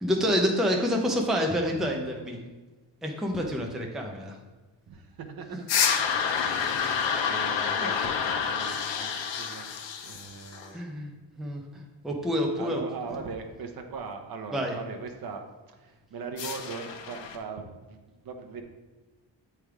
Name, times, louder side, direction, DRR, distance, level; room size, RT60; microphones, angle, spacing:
voice 1, 0.0-2.4 3.0-4.4 10.7-11.1 11.4-11.6 12.0-12.8 14.5-14.7, equal, ahead, 0 dB, 0.6 m, -27 dB
voice 2, 4.9-5.6 6.0-6.2 6.7-9.7 10.0-10.9 12.6-15.4 15.8-18.6, right 5 dB, 55° right, 5 dB, 0.8 m, -40 dB
sound 1, 5.7-10.7 16.4-17.4, left 7 dB, 85° left, 0.8 m, -28 dB
8.7 x 3.4 x 4.7 m, 1.2 s
wide cardioid pair, 165°, 43 cm